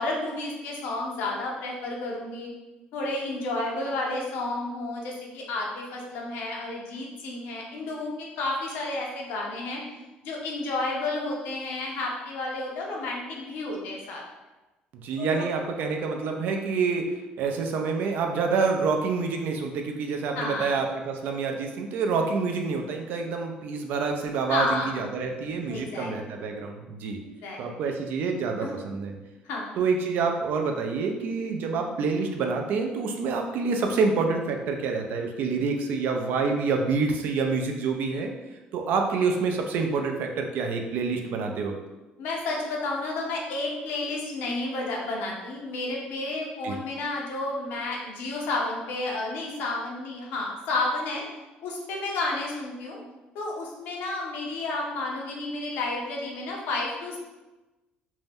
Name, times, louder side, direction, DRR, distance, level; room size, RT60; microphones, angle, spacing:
voice 1, 0.0-2.5 2.9-9.8 10.2-14.2 15.2-15.4 20.3-20.8 24.5-25.0 25.7-26.1 27.4-27.9 28.6-28.9 29.4-29.8 31.6-31.8 42.2-51.2 51.6-53.0 53.3-57.2, left 2 dB, 80° left, -2 dB, 0.7 m, -31 dB
voice 2, 14.9-17.1 17.4-27.2 27.6-29.1 29.8-38.3 38.7-41.7 46.6-46.8, right 4 dB, 65° right, 3 dB, 0.4 m, -27 dB
2.6 x 2.1 x 3.4 m, 1.1 s
cardioid pair, 115°, 3 cm